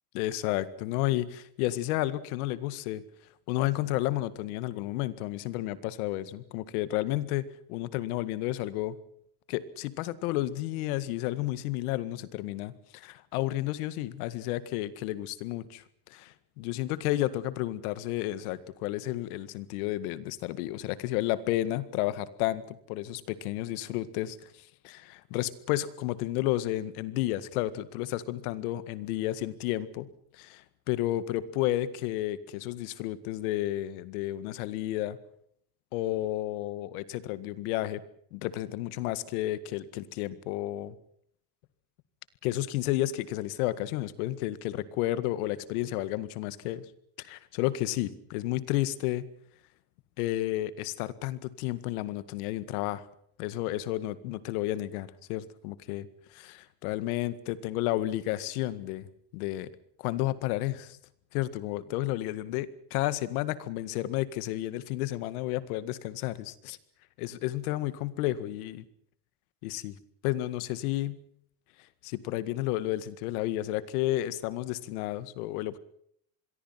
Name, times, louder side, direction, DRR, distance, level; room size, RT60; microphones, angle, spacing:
voice 1, 0.1-3.0 3.5-9.0 9.5-15.8 16.1-35.2 35.9-38.0 38.3-41.0 42.4-46.9 47.2-49.3 50.2-53.1 53.4-59.1 59.3-59.7 60.0-61.0 61.3-66.8 67.2-68.8 69.6-70.0 70.2-71.2 72.0-75.8, left 15 dB, 70° left, 15 dB, 1.9 m, -32 dB
26.5 x 22.5 x 5.9 m, 0.68 s
cardioid pair, 155°, 45 cm